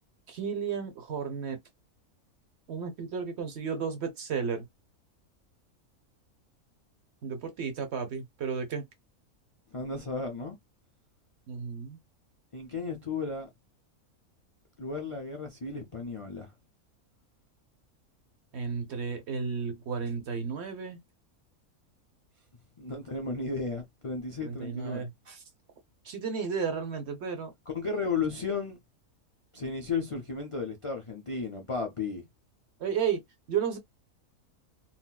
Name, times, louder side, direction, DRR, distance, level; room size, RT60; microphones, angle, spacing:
voice 1, 0.3-1.6 2.7-4.6 7.2-8.8 11.5-12.0 18.5-21.0 24.4-25.4 26.0-27.5 32.8-33.2 33.5-33.8, right 6 dB, 60° right, 0.8 m, -33 dB
voice 2, 9.7-10.6 12.5-13.5 14.8-16.5 22.8-25.1 27.7-28.8 29.5-32.2, left 4 dB, 55° left, 0.3 m, -34 dB
4.1 x 2.0 x 2.2 m
omnidirectional pair, 1.6 m